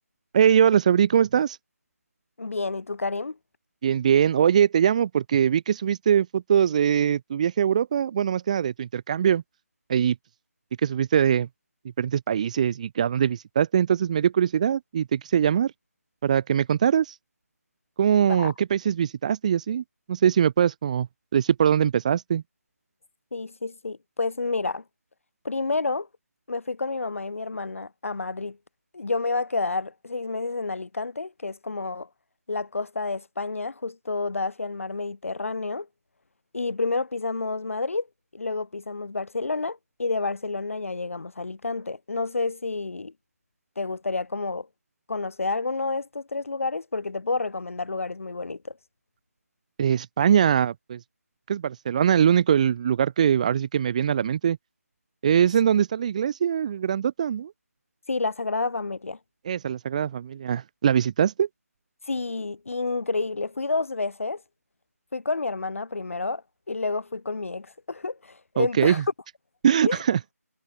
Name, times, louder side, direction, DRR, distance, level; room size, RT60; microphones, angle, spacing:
voice 1, 0.3-1.6 3.8-9.4 9.9-10.2 10.8-11.5 12.0-15.7 16.2-17.1 18.0-21.1 21.3-22.4 49.8-51.0 51.5-54.6 55.2-57.5 59.5-61.5 68.6-69.0 69.6-70.2, right 8 dB, 25° right, 1.6 m, -22 dB
voice 2, 2.4-3.4 18.1-18.5 23.3-24.8 25.4-26.1 26.5-28.6 28.9-32.1 32.5-35.9 36.5-38.1 38.3-43.1 43.8-44.7 45.1-48.8 58.1-59.2 62.1-64.4 65.1-66.4 66.7-69.0 69.8-70.0, left 3 dB, 55° left, 3.8 m, -29 dB
figure-of-eight pair, 160°, 9 cm